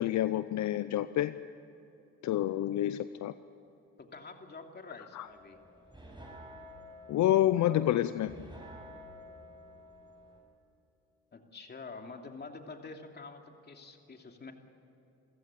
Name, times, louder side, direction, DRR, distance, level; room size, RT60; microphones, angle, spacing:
voice 1, 0.0-1.3 2.2-3.3 5.1-5.3 7.1-8.3, left 13 dB, 70° left, 13 dB, 0.7 m, -28 dB
voice 2, 4.0-5.6 11.3-14.5, left 4 dB, 35° left, 3 dB, 2.9 m, -47 dB
sound 1, 5.3-10.4, equal, 15° right, 6.4 m, -51 dB
28.5 x 15.5 x 8.5 m, 3.0 s
cardioid pair, 90°, 30 cm